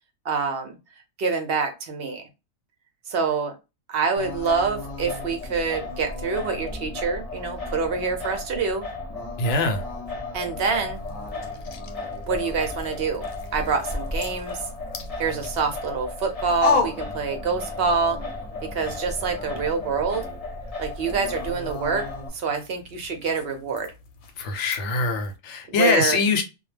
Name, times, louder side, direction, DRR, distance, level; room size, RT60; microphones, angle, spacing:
voice 1, 0.2-0.8 1.2-2.3 3.1-3.5 3.9-8.8 10.3-11.0 12.3-13.2 13.5-14.6 15.2-18.2 18.6-20.2 20.8-22.0 22.3-23.9 25.8-26.2, right 5 dB, 60° right, 0.7 m, -26 dB
Singing, 4.2-22.3, left 2 dB, 35° left, 0.7 m, -34 dB
voice 2, 9.4-9.8 24.4-26.4, left 4 dB, 65° left, 0.8 m, -23 dB
sound 1, 10.7-17.9 18.2-25.4, left 4 dB, 90° left, 1.0 m, -35 dB
2.3 x 2.0 x 3.2 m
omnidirectional pair, 1.4 m